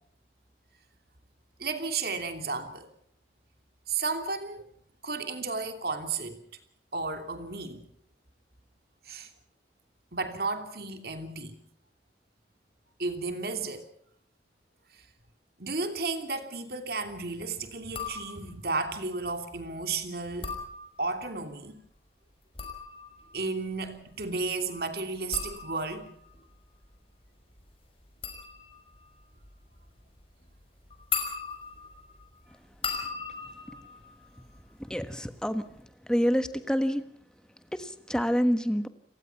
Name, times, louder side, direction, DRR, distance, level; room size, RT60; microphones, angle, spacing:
voice 1, 1.6-2.9 3.9-4.7 5.0-6.4 6.9-7.8 9.0-9.3 10.1-11.5 13.0-13.9 15.6-20.5 21.0-21.8 23.3-26.1, right 3 dB, 55° right, 7 dB, 2.9 m, -33 dB
Flicking a wine glass, 17.8-18.7 20.2-21.3 22.3-35.0 35.3-35.8, left 6 dB, 30° left, 5.3 m, -39 dB
voice 2, 34.8-35.6 36.1-37.0 37.7-38.9, equal, 5° left, 10 dB, 1.3 m, -27 dB
29.5 x 18.5 x 5.9 m, 0.69 s
head